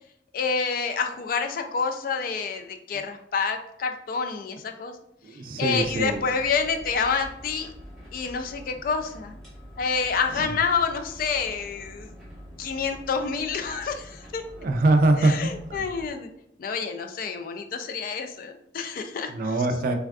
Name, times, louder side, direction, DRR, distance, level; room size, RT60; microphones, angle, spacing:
voice 1, 0.3-5.0 5.3-7.7 8.1-9.3 9.8-12.1 12.6-14.4 15.2-16.3 16.6-19.5, left 5 dB, 50° left, 5 dB, 0.3 m, -28 dB
voice 2, 5.2-6.2 10.4-10.5 14.6-15.8 19.3-20.0, right 2 dB, 50° right, 5 dB, 0.3 m, -23 dB
sound 1, 5.7-16.1, equal, ahead, 0.8 m, -45 dB
3.4 x 2.3 x 2.3 m, 0.77 s
head